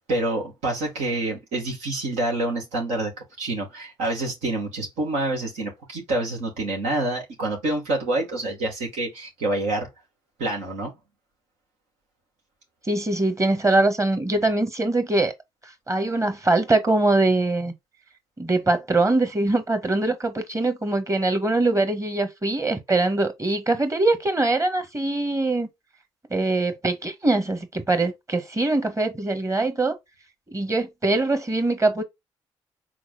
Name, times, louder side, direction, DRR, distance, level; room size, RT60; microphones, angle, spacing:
voice 1, 0.0-3.1 3.4-9.9 10.4-10.9, right 2 dB, 85° right, 2.2 m, -27 dB
voice 2, 12.9-15.3 15.6-17.7 18.4-25.7 26.3-30.0 30.5-32.0, right 2 dB, 25° right, 1.6 m, -23 dB
4.7 x 4.2 x 2.5 m
hypercardioid pair, 45°, 12 cm